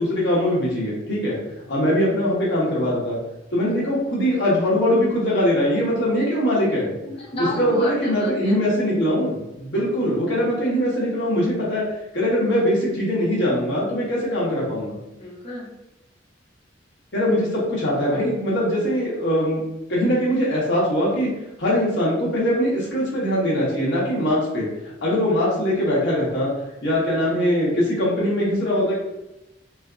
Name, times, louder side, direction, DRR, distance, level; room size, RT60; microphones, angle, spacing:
voice 1, 0.0-1.4 1.7-3.2 3.5-6.9 7.6-11.8 12.1-14.9 17.1-19.6 19.9-21.3 21.6-24.7 25.0-26.5 26.8-28.9, equal, 65° left, -5 dB, 1.0 m, -21 dB
voice 2, 7.0-8.5 15.1-15.7, left 1 dB, 30° left, -8 dB, 0.7 m, -31 dB
3.2 x 2.1 x 2.4 m, 0.94 s
head